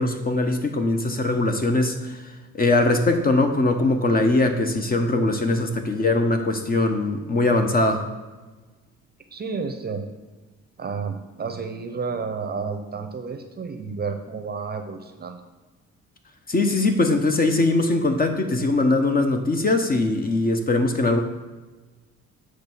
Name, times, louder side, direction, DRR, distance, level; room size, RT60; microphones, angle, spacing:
voice 1, 0.0-8.0 16.5-21.2, left 2 dB, 30° left, 5 dB, 0.8 m, -21 dB
voice 2, 9.3-10.0 10.8-15.4, right 5 dB, 35° right, 7 dB, 0.7 m, -31 dB
7.3 x 3.1 x 6.0 m, 1.2 s
cardioid pair, 90°, 30 cm